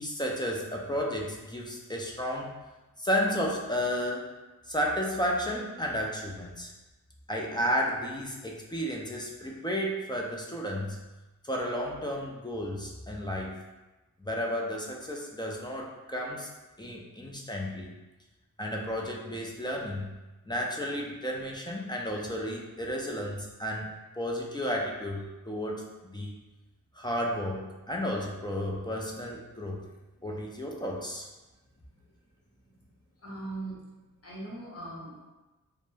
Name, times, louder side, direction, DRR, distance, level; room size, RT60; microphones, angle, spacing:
voice 1, 0.0-2.5 3.0-4.3 4.6-6.7 7.3-11.0 11.4-13.6 14.2-16.5 16.8-17.9 18.6-20.1 20.5-23.9 24.2-26.3 26.9-29.8 30.2-31.3, equal, 15° left, -2 dB, 0.4 m, -32 dB
voice 2, 33.2-33.9 34.2-35.3, right 2 dB, 45° left, -4 dB, 0.9 m, -41 dB
2.2 x 2.0 x 3.1 m, 1.1 s
cardioid pair, 50°, 35 cm